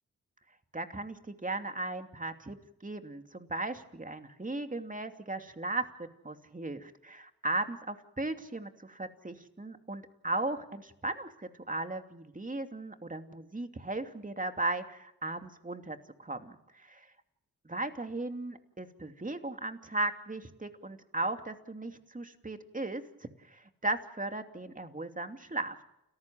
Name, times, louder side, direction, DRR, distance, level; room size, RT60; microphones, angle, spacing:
voice 1, 0.7-2.6 2.8-5.9 6.2-17.0 17.6-23.0 23.5-25.8, right 2 dB, 25° right, 6 dB, 2.8 m, -36 dB
30.0 x 14.5 x 7.7 m, 0.84 s
supercardioid pair, 40°, 35 cm